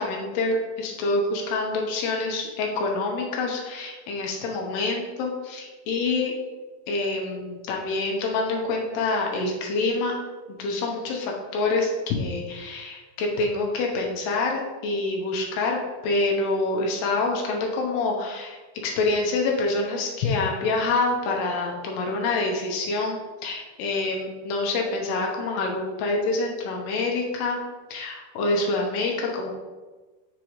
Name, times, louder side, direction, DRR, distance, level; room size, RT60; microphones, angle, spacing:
voice 1, 0.0-6.3 6.9-10.2 10.5-18.6 18.8-27.6 27.9-29.5, left 3 dB, 70° left, 0 dB, 2.8 m, -26 dB
8.5 x 6.8 x 3.1 m, 1.3 s
omnidirectional pair, 5.3 m